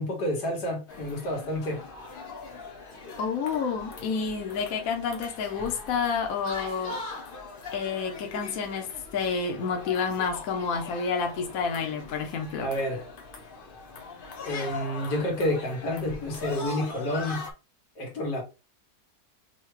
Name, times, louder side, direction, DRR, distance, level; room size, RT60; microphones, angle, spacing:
voice 1, 0.0-1.8 12.6-13.0 14.4-17.5 18.0-18.4, left 1 dB, 90° left, 1.9 m, -29 dB
sound 1, 0.9-17.5, left 3 dB, 45° left, 0.8 m, -41 dB
voice 2, 3.2-6.9 7.7-12.7, left 5 dB, 65° left, 1.2 m, -29 dB
5.7 x 2.3 x 3.2 m
omnidirectional pair, 1.7 m